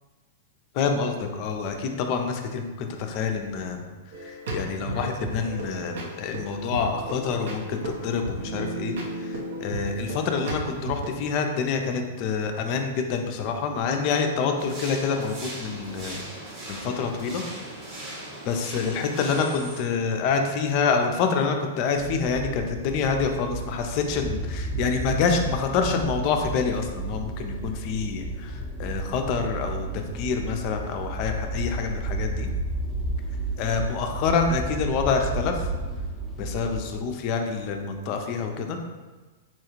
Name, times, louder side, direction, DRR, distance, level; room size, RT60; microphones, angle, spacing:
voice 1, 0.7-3.9 4.2-16.2 16.7-17.4 18.5-32.5 33.6-35.7 36.4-38.8, left 5 dB, 45° left, 4 dB, 0.4 m, -27 dB
sound 1, 4.1-11.1, right 1 dB, 65° right, 0.7 m, -34 dB
sound 2, 14.6-19.8, right 1 dB, 40° right, 0.9 m, -39 dB
sound 3, 22.0-37.0, right 2 dB, 5° left, 0.6 m, -32 dB
4.2 x 2.3 x 3.0 m, 1.3 s
hypercardioid pair, 105°, 0 cm